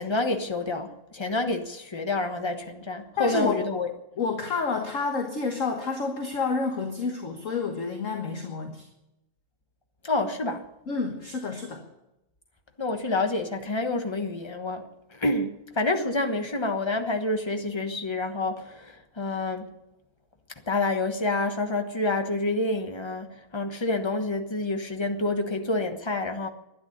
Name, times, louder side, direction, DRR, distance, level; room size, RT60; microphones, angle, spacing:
voice 1, 0.0-3.9 10.0-10.6 12.8-14.8 15.1-19.7 20.7-23.3 23.5-26.5, left 2 dB, 20° left, 0.8 m, -28 dB
voice 2, 3.2-3.7 4.2-8.9 10.9-11.8, left 4 dB, 40° left, 1.6 m, -29 dB
12.5 x 10.5 x 9.9 m
omnidirectional pair, 2.3 m